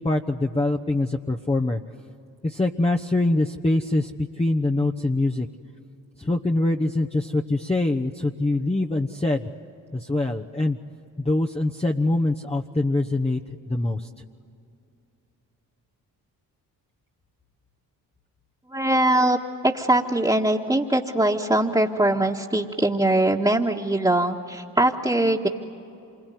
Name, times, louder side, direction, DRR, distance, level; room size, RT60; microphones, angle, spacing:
voice 1, 0.0-1.8 2.4-5.5 6.2-9.5 9.9-10.8 11.2-13.4 13.7-14.2, left 2 dB, 15° left, 1 dB, 1.1 m, -24 dB
voice 2, 18.7-19.4 19.6-25.5, right 1 dB, 10° right, -3 dB, 1.8 m, -22 dB
27.5 x 22.0 x 9.4 m, 2.7 s
hypercardioid pair, 45°, 44 cm